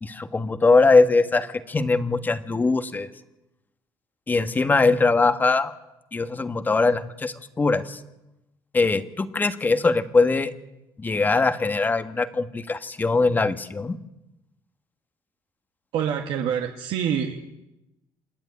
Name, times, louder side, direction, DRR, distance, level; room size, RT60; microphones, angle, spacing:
voice 1, 0.0-3.1 4.3-5.7 6.1-8.0 8.7-10.5 11.0-14.0, left 3 dB, 20° left, 10 dB, 1.3 m, -21 dB
voice 2, 15.9-17.4, right 8 dB, 75° right, 3 dB, 1.9 m, -26 dB
27.5 x 10.5 x 9.6 m, 0.94 s
cardioid pair, 115°, 9 cm